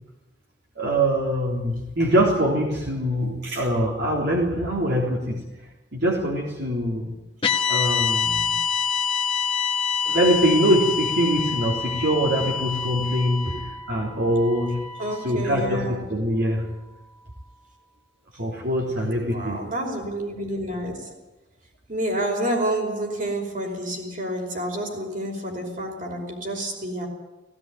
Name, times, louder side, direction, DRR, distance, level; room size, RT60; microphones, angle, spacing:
voice 1, 0.8-5.4 5.9-7.2 7.7-8.5 10.0-13.5 13.9-14.8 15.2-15.8 16.1-16.7 18.4-19.6, equal, 65° right, -3 dB, 3.7 m, -23 dB
sound 1, 7.4-15.7, left 6 dB, 30° left, 1.5 m, -27 dB
voice 2, 15.0-16.1 19.2-21.1 21.9-27.1, right 1 dB, 45° right, 2 dB, 5.2 m, -29 dB
17.5 x 17.0 x 9.3 m, 1.0 s
head